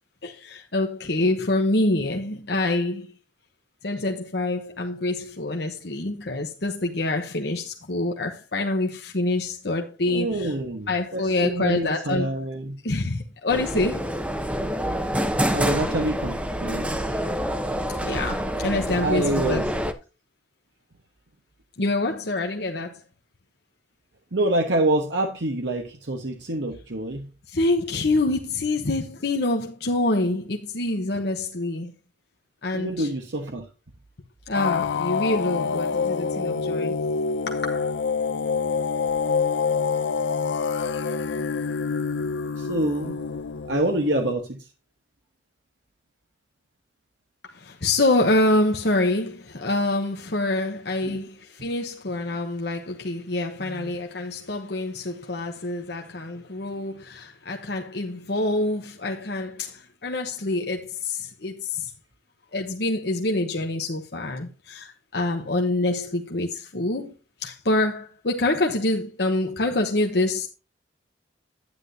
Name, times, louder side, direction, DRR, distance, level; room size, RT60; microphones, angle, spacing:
voice 1, 0.2-3.1 3.8-10.5 10.9-12.3 12.8-14.0 18.0-19.6 21.8-23.0 27.5-31.9 32.6-33.1 34.5-37.0 37.5-37.9 47.5-61.9 62.5-67.1 67.4-70.5, left 2 dB, 65° left, 1.0 m, -26 dB
voice 2, 10.1-12.8 15.5-17.2 19.0-19.7 24.3-27.3 32.7-33.7 36.3-36.6 42.5-43.2 43.6-44.7 51.1-51.2 53.6-53.9, right 1 dB, 85° right, 1.2 m, -27 dB
sound 1, 13.5-19.9, equal, 5° right, 0.7 m, -27 dB
sound 2, 34.5-44.3, left 5 dB, 90° left, 0.5 m, -26 dB
9.7 x 9.7 x 2.7 m
head